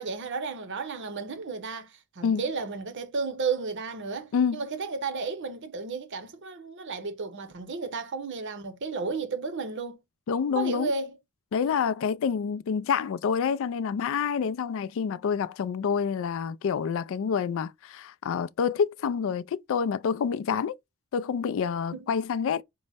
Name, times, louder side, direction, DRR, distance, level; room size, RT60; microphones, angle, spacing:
voice 1, 0.0-10.0 10.5-11.2 21.9-22.1, right 4 dB, 55° right, 0.7 m, -33 dB
voice 2, 10.3-10.9 11.5-20.8 21.1-22.6, left 6 dB, 60° left, 0.3 m, -27 dB
5.2 x 2.0 x 3.4 m
head